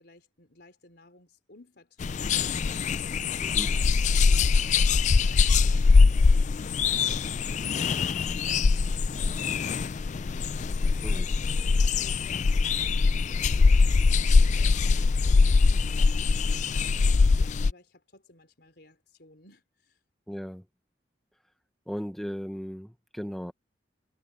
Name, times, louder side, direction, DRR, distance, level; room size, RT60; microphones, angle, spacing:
voice 1, 0.0-3.3 3.6-11.1 11.5-11.7 12.0-12.3 12.7-19.9, left 2 dB, 60° left, 4.5 m, -56 dB
sound 1, 2.0-17.7, left 4 dB, 40° left, 0.3 m, -22 dB
voice 2, 20.3-20.6 21.9-23.5, equal, ahead, 0.8 m, -36 dB
head